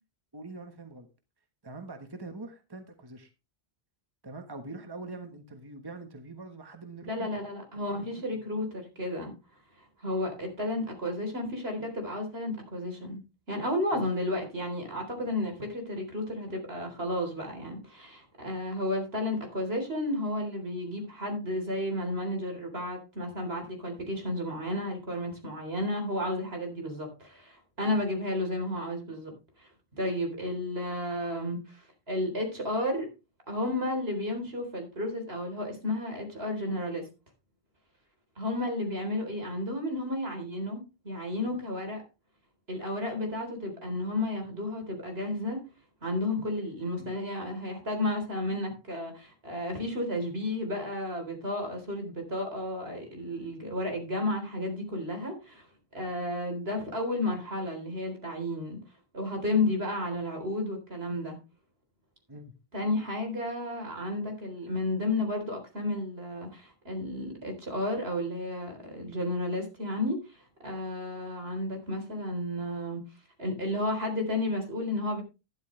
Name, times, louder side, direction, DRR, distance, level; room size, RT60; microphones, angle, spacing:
voice 1, 0.3-1.1 1.6-3.3 4.2-7.3 7.9-8.2 13.9-14.0 62.3-62.5, right 3 dB, 25° right, 1.4 m, -43 dB
voice 2, 7.1-9.3 10.0-13.2 13.5-29.3 29.6-33.1 33.5-37.0 38.4-42.0 42.7-45.6 46.0-55.7 55.9-58.8 59.1-61.4 62.7-70.4 70.6-73.0 73.4-75.2, left 1 dB, 75° right, 4.1 m, -32 dB
12.5 x 10.5 x 3.3 m
omnidirectional pair, 1.0 m